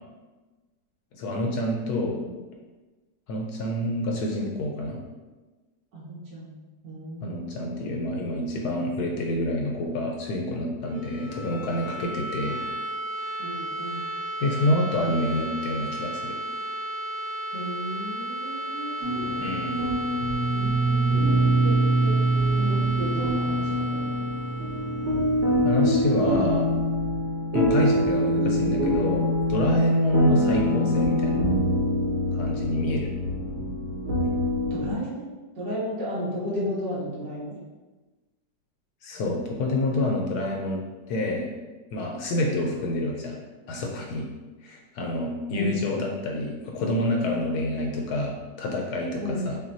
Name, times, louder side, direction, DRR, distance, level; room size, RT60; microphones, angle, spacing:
voice 1, 1.2-2.2 3.3-5.0 7.2-12.6 14.4-16.4 19.4-19.9 25.6-26.7 27.5-31.4 32.3-33.1 39.0-41.5 41.9-43.4 43.7-44.3 44.6-49.6, left 1 dB, 70° left, 1 dB, 1.0 m, -27 dB
voice 2, 5.9-6.6 6.8-8.3 11.9-12.2 13.4-14.1 17.5-19.5 20.5-22.2 22.6-24.1 34.7-35.3 35.6-37.5 45.5-45.7 49.2-49.4, equal, 80° right, -7 dB, 1.8 m, -34 dB
sound 1, 10.7-26.5, right 1 dB, 30° right, 1.1 m, -34 dB
sound 2, 19.0-34.9, equal, 60° right, 0.7 m, -24 dB
5.7 x 2.2 x 2.6 m, 1.2 s
omnidirectional pair, 1.9 m